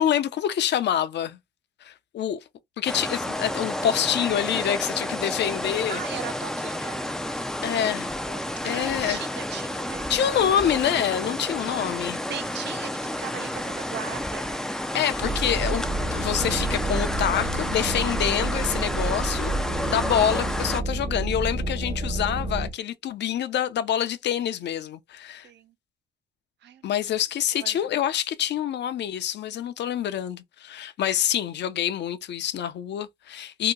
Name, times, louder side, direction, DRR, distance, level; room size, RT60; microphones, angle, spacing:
voice 1, 0.0-1.4 1.8-2.4 2.8-6.0 7.6-8.2 8.6-9.3 10.1-12.2 14.9-15.8 16.1-19.5 19.9-25.5 26.8-33.7, left 10 dB, 60° left, 0.6 m, -26 dB
sound 1, 2.9-20.8, left 1 dB, 5° left, 0.4 m, -31 dB
voice 2, 5.9-7.3 8.2-10.3 12.3-14.6 19.9-20.3 25.4-25.7 26.6-26.9 27.5-27.8, right 10 dB, 60° right, 0.6 m, -39 dB
sound 2, 15.2-22.7, right 2 dB, 25° right, 0.8 m, -29 dB
2.8 x 2.1 x 3.7 m
cardioid pair, 90°, 20 cm